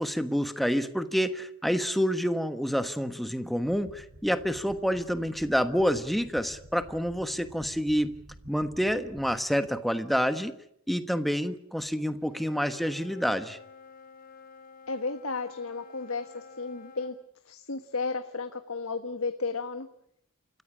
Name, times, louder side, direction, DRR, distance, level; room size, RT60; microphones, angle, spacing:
voice 1, 0.0-8.2 8.5-10.5 10.9-13.6, equal, ahead, 10 dB, 1.2 m, -28 dB
sound 1, 3.6-9.4, equal, 50° right, 3.9 m, -51 dB
Wind instrument woodwind instrument, 12.2-17.2, left 4 dB, 40° left, 2.6 m, -51 dB
voice 2, 14.9-17.2 17.4-19.9, left 4 dB, 85° left, 8 dB, 1.5 m, -33 dB
28.5 x 15.0 x 9.9 m, 0.75 s
head